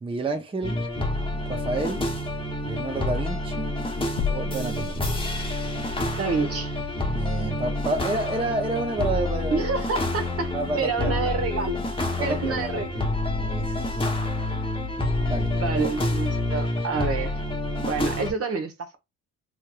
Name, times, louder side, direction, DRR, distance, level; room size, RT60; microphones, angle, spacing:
voice 1, 0.0-0.8 1.3-2.0 2.6-3.7 4.3-5.0 7.1-9.6 10.5-11.2 12.2-12.8 13.4-14.0 15.3-15.5, right 2 dB, 20° right, 0.7 m, -29 dB
sound 1, 0.6-18.3, left 2 dB, 15° left, 0.9 m, -28 dB
sound 2, 4.2-5.8, left 5 dB, 45° left, 0.5 m, -31 dB
voice 2, 6.2-6.7 9.5-10.5 10.8-11.8 12.2-13.0 15.5-17.4 17.8-19.0, right 4 dB, 50° right, 1.0 m, -28 dB
3.1 x 3.0 x 2.3 m
cardioid pair, 90°, 30 cm